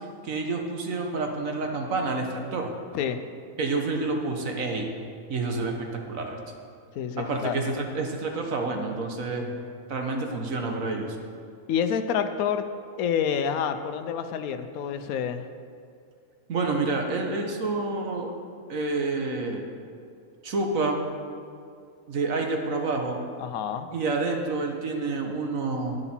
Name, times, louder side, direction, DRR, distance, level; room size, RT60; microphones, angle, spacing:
voice 1, 0.2-2.7 3.6-4.9 5.3-5.7 6.1-6.4 7.2-9.5 9.9-11.2 16.5-18.3 18.7-19.6 20.4-21.0 22.1-23.2 23.9-26.0, right 3 dB, 70° right, 2 dB, 1.5 m, -28 dB
voice 2, 7.0-7.6 11.7-12.7 13.0-15.5 23.4-23.9, left 8 dB, 80° left, 9 dB, 1.1 m, -28 dB
11.0 x 9.9 x 4.4 m, 2.3 s
omnidirectional pair, 1.5 m